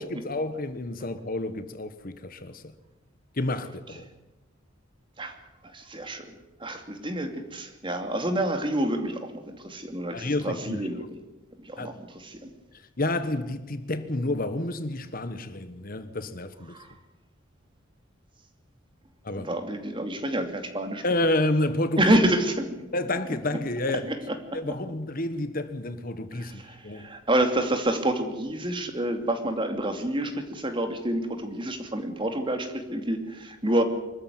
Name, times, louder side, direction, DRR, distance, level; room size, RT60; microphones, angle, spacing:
voice 1, 0.0-2.7 3.4-4.1 10.1-10.9 11.8-12.0 13.0-16.8 19.2-19.5 21.0-22.1 22.9-24.1 24.5-27.1, left 1 dB, 45° left, 1.3 m, -29 dB
voice 2, 5.7-6.3 6.6-11.0 11.6-12.5 16.7-16.9 19.4-21.0 22.0-22.8 24.1-24.3 24.7-24.8 26.3-33.8, right 1 dB, 25° right, 2.7 m, -28 dB
24.5 x 13.5 x 9.5 m
head